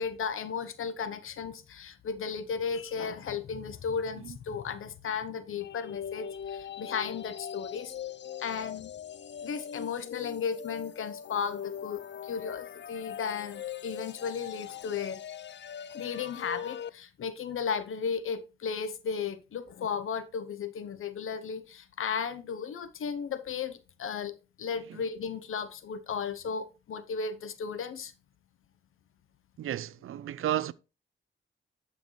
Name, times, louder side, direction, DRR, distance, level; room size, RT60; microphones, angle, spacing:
voice 1, 0.0-7.9 8.4-8.9 9.4-15.2 15.9-28.1, left 6 dB, 75° left, 0.9 m, -35 dB
sound 1, 5.6-16.9, left 8 dB, 60° left, 0.6 m, -41 dB
voice 2, 29.6-30.7, right 11 dB, 80° right, 0.5 m, -33 dB
11.5 x 5.8 x 3.2 m
cardioid pair, 60°, 21 cm